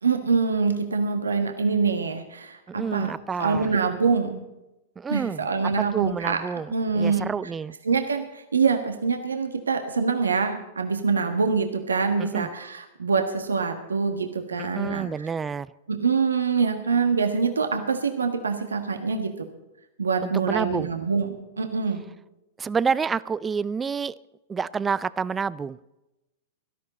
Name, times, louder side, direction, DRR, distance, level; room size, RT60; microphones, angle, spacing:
voice 1, 0.0-4.4 5.1-6.4 6.7-7.3 7.8-15.3 15.9-19.5 20.0-22.0, right 5 dB, 85° right, 5 dB, 1.4 m, -25 dB
voice 2, 2.7-3.7 5.0-5.5 5.9-7.7 12.2-12.5 14.6-15.7 20.2-20.9 22.6-24.1 24.5-25.8, right 5 dB, 20° right, 18 dB, 0.5 m, -28 dB
17.5 x 13.0 x 4.2 m, 0.95 s
hypercardioid pair, 100°, 0 cm